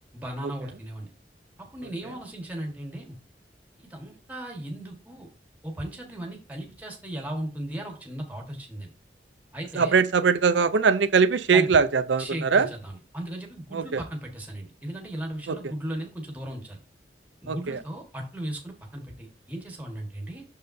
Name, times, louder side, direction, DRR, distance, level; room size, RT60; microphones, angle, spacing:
voice 1, 0.1-1.1 1.6-3.2 3.8-5.3 5.6-8.9 9.5-10.0 11.5-11.7 12.2-16.8 17.4-20.4, right 1 dB, 10° right, 1.4 m, -36 dB
voice 2, 9.7-12.7 13.7-14.0 15.5-15.6 17.5-17.8, right 5 dB, 90° right, 0.6 m, -21 dB
6.7 x 6.5 x 2.7 m
head